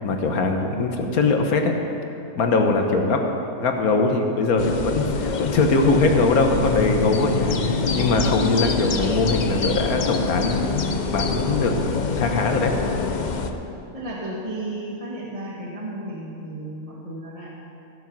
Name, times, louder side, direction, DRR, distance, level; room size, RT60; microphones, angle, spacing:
voice 1, 0.0-1.7 2.3-3.2 3.6-11.7 12.2-12.7, left 3 dB, 80° left, 4 dB, 1.5 m, -21 dB
sound 1, 4.6-13.5, left 4 dB, 50° left, 0.5 m, -25 dB
voice 2, 12.8-13.1 13.9-17.5, right 1 dB, 25° right, -4 dB, 1.4 m, -33 dB
15.0 x 7.9 x 6.0 m, 2.8 s
omnidirectional pair, 1.5 m